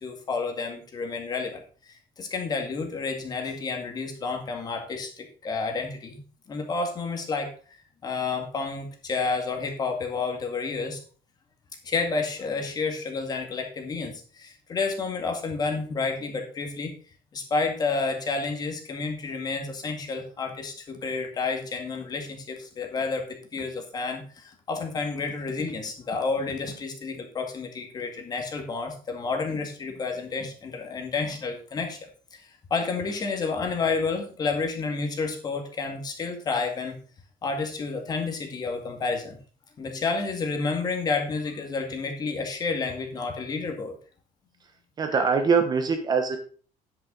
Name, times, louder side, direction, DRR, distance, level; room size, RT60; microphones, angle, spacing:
voice 1, 0.0-6.2 6.5-7.8 8.0-11.0 11.8-16.9 17.3-37.0 37.4-39.4 39.8-43.9, left 4 dB, 25° left, 4 dB, 2.0 m, -30 dB
voice 2, 45.0-46.4, right 5 dB, 25° right, 6 dB, 1.0 m, -23 dB
9.7 x 8.7 x 3.9 m, 0.40 s
cardioid pair, 180°, 15 cm